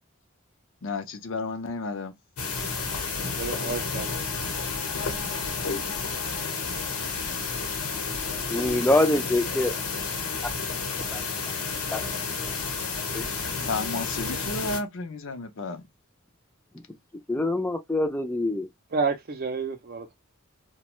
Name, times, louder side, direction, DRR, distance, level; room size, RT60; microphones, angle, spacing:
voice 1, 0.8-2.1 13.6-15.8, left 3 dB, 60° left, 0.6 m, -32 dB
sound 1, 2.4-14.8, left 4 dB, 80° left, 0.9 m, -31 dB
voice 2, 3.4-4.3 18.9-20.2, right 4 dB, 45° right, 0.5 m, -30 dB
voice 3, 8.5-9.7 11.1-11.2 11.9-12.1 12.4-12.5 13.1-13.3 17.3-18.7, left 2 dB, 10° left, 0.5 m, -25 dB
2.4 x 2.2 x 3.0 m
head